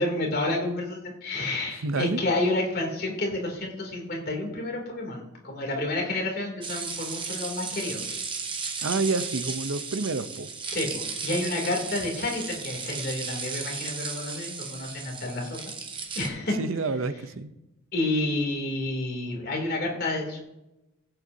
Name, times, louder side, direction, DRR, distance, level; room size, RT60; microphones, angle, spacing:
voice 1, 0.0-8.0 10.7-15.6 16.2-16.6 17.9-20.4, left 2 dB, 45° left, 0 dB, 2.7 m, -29 dB
voice 2, 1.8-2.2 8.8-10.5 16.6-17.5, right 3 dB, 65° right, 12 dB, 0.6 m, -28 dB
sound 1, 6.6-16.3, right 5 dB, 20° right, 0.9 m, -35 dB
16.5 x 7.9 x 2.7 m, 0.94 s
head